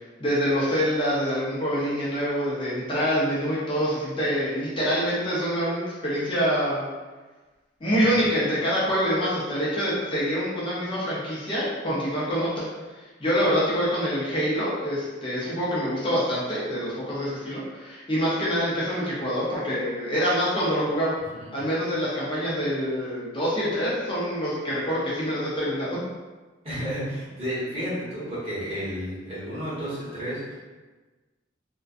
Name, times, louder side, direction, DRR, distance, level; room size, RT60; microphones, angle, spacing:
voice 1, 0.2-6.9 7.8-12.7 13.2-21.1 21.5-26.0, equal, 25° left, -8 dB, 0.5 m, -26 dB
voice 2, 26.6-30.5, equal, 35° right, -10 dB, 1.0 m, -32 dB
2.4 x 2.2 x 2.4 m, 1.3 s
head